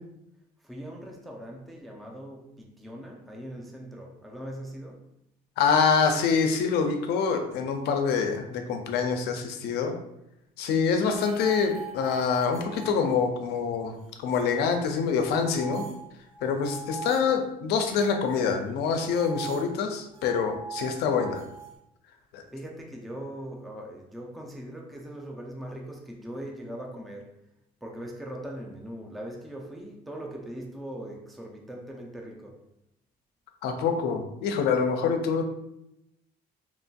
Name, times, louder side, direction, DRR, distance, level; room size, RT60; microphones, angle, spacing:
voice 1, 0.6-5.1 22.5-27.4 27.8-32.6, right 1 dB, ahead, 0 dB, 0.3 m, -40 dB
voice 2, 5.6-9.9 10.6-15.8 16.4-21.4 22.3-22.4 33.6-35.4, left 5 dB, 75° left, 5 dB, 0.4 m, -26 dB
sound 1, 11.2-13.5 13.7-14.6 15.2-17.3 17.8-21.8, right 5 dB, 35° right, 1.4 m, -41 dB
3.0 x 2.5 x 2.2 m, 0.83 s
cardioid pair, 110°, 17 cm